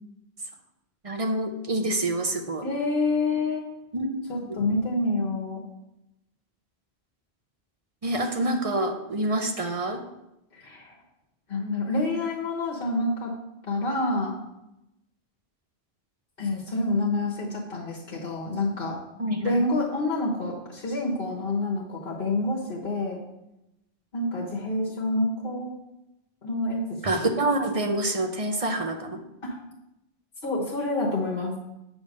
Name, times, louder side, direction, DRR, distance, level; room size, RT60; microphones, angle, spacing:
voice 1, 1.0-2.7 3.9-4.1 4.4-4.6 8.0-10.0 19.2-19.7 27.0-29.2, right 2 dB, 35° right, 4 dB, 0.8 m, -27 dB
voice 2, 2.6-3.6 4.3-5.6 10.5-10.9 11.5-13.3 13.7-14.3 16.4-19.0 19.4-23.2 24.1-25.8 26.4-26.8 29.4-29.5 30.4-31.5, left 2 dB, 60° left, -3 dB, 1.4 m, -27 dB
8.1 x 3.5 x 6.5 m, 0.90 s
omnidirectional pair, 1.1 m